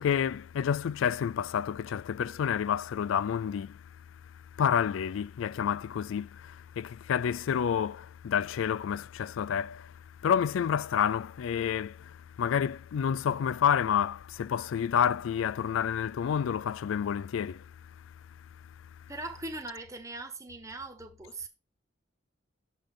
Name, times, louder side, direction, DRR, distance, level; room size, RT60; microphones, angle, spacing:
voice 1, 0.0-19.1, left 8 dB, 85° left, 0.3 m, -30 dB
voice 2, 19.1-21.5, right 2 dB, 15° right, 1.2 m, -40 dB
7.1 x 5.6 x 4.9 m
head